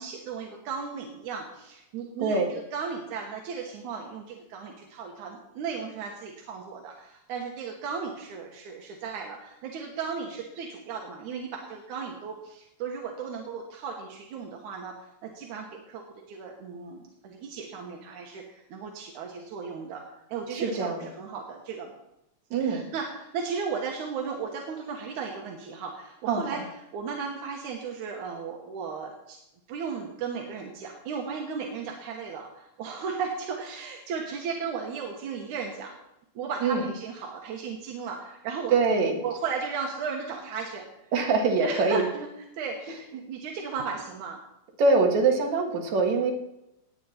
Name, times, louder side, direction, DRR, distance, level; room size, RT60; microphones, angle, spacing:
voice 1, 0.0-20.0 20.3-21.9 22.6-26.6 26.9-29.4 29.7-36.0 36.4-38.8 39.2-41.1 41.6-42.3 42.5-44.4, right 5 dB, 90° right, 1 dB, 2.7 m, -35 dB
voice 2, 2.2-2.5 20.5-21.1 22.5-22.9 26.3-26.6 36.6-36.9 38.7-39.2 41.1-42.0 44.8-46.3, right 4 dB, 70° right, 2 dB, 3.0 m, -24 dB
18.5 x 8.6 x 4.3 m, 0.87 s
omnidirectional pair, 3.3 m